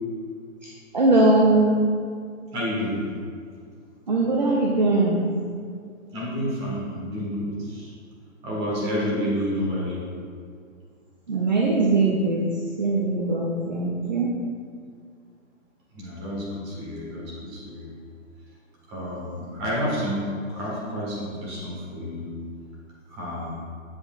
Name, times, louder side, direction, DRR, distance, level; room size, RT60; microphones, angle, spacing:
voice 1, 0.6-1.7 4.1-5.3 11.3-12.4 12.8-14.3, right 2 dB, 35° right, -2 dB, 0.4 m, -21 dB
voice 2, 2.5-3.0 6.1-7.9 8.4-10.0 15.9-17.9 18.9-22.3 23.1-23.5, equal, 20° right, -5 dB, 1.3 m, -29 dB
7.7 x 6.8 x 2.3 m, 2.2 s
hypercardioid pair, 165°, 40 cm